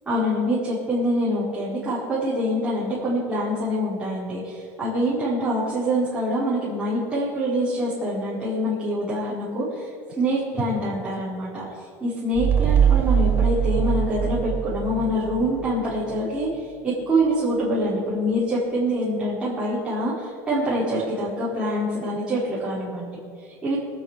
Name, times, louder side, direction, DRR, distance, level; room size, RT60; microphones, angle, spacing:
voice 1, 0.0-9.9 10.2-11.6 12.0-23.8, equal, 10° right, -11 dB, 5.0 m, -25 dB
sound 1, 12.4-15.7, right 8 dB, 25° right, 0.4 m, -22 dB
25.5 x 9.9 x 5.2 m, 2.1 s
cardioid pair, 160°, 8 cm